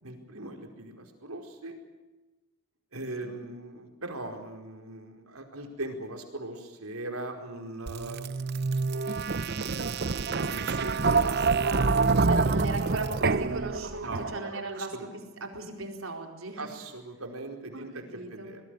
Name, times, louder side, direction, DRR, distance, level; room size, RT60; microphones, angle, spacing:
voice 1, 0.0-1.8 2.9-8.5 8.9-9.0 10.0-12.2 14.0-14.6 14.9-15.0 16.6-18.6, right 2 dB, 90° right, 4 dB, 4.7 m, -40 dB
sound 1, 7.9-14.6, right 4 dB, 50° right, 0.8 m, -27 dB
voice 2, 11.6-12.0 12.2-16.7 17.7-18.6, right 2 dB, 75° right, 3 dB, 4.4 m, -37 dB
24.5 x 21.5 x 6.6 m, 1.1 s
head